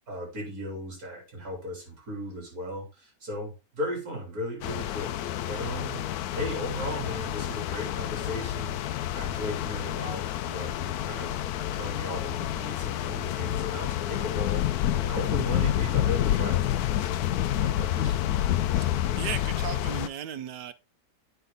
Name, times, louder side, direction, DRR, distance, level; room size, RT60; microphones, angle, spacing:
voice 1, 0.1-5.2 5.5-6.0 6.3-11.3 11.7-18.5, equal, 60° right, 3.8 m, -37 dB
sound 1, 4.6-20.1, left 12 dB, 70° left, 1.0 m, -29 dB
voice 2, 19.2-20.7, right 9 dB, 80° right, 1.2 m, -36 dB
8.1 x 5.4 x 3.8 m
omnidirectional pair, 1.8 m